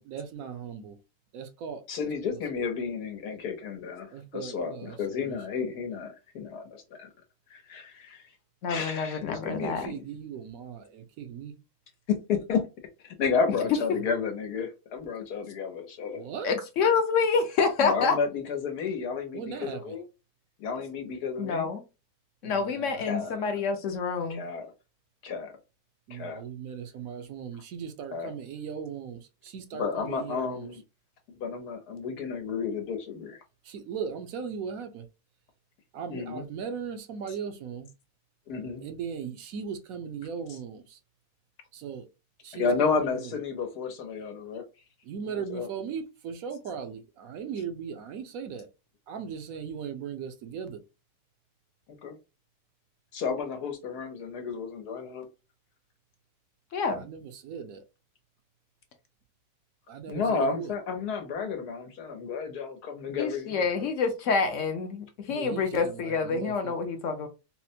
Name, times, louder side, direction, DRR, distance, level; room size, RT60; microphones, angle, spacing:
voice 1, 0.0-1.0 1.3-1.8 2.3-2.4 4.1-5.4 9.5-11.5 13.9-14.2 16.1-16.6 19.3-20.0 22.4-23.5 26.1-30.7 33.6-35.1 35.9-37.9 38.8-41.0 41.7-42.1 42.4-43.3 45.0-48.7 49.1-50.8 56.9-57.8 59.9-60.7 65.3-66.7, right 7 dB, 70° right, 1.0 m, -38 dB
voice 2, 1.9-7.1 7.5-8.2 8.7-10.0 12.1-12.7 13.0-16.3 17.8-20.0 20.6-21.7 23.1-23.3 24.3-24.7 25.2-25.5 26.1-26.4 28.1-28.3 29.7-30.8 31.4-33.4 36.1-36.4 38.5-38.8 40.5-40.6 42.5-44.6 45.2-45.7 52.0-52.2 53.1-55.3 60.1-63.6, left 5 dB, 90° left, 1.4 m, -32 dB
voice 3, 8.6-9.8 16.4-18.2 21.4-21.8 22.4-24.4 56.7-57.0 63.2-67.3, left 5 dB, 60° left, 0.9 m, -27 dB
4.2 x 2.1 x 2.6 m
omnidirectional pair, 1.6 m